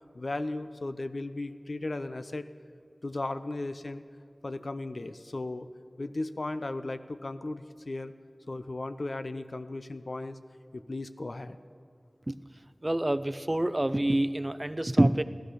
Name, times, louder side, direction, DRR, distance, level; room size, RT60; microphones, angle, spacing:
voice 1, 0.1-2.5 3.0-4.0 4.4-5.7 6.0-8.1 8.5-10.4 10.7-11.6, left 2 dB, 70° left, 10 dB, 0.6 m, -36 dB
voice 2, 12.8-15.2, right 1 dB, 30° right, 14 dB, 0.5 m, -26 dB
15.5 x 13.0 x 6.3 m, 2.3 s
wide cardioid pair, 45°, 0 cm